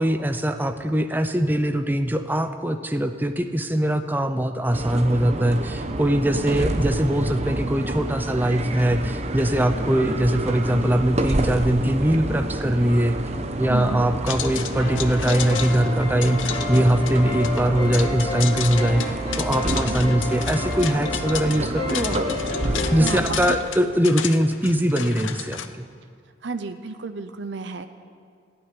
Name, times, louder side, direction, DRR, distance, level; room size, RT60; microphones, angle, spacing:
voice 1, 0.0-13.2 13.6-22.2 22.9-25.9, right 1 dB, 10° right, 8 dB, 0.6 m, -22 dB
sound 1, 4.7-23.5, right 1 dB, 35° right, 0.8 m, -28 dB
voice 2, 13.7-14.0 19.9-20.1 22.8-23.6 26.4-27.9, right 4 dB, 65° right, 9 dB, 0.6 m, -33 dB
sound 2, 14.3-25.7, left 9 dB, 80° left, 0.7 m, -33 dB
sound 3, 14.7-23.0, left 3 dB, 30° left, 3.0 m, -32 dB
14.5 x 8.8 x 9.9 m, 2.1 s
head